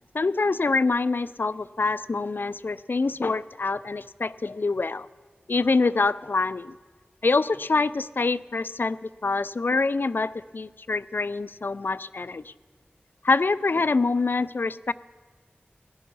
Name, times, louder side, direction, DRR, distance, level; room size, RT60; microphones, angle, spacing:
voice 1, 0.1-5.1 5.5-6.8 7.2-12.5 13.2-14.9, left 3 dB, 65° left, 17 dB, 0.4 m, -25 dB
18.0 x 11.0 x 5.4 m, 1.4 s
wide cardioid pair, 45°, 4 cm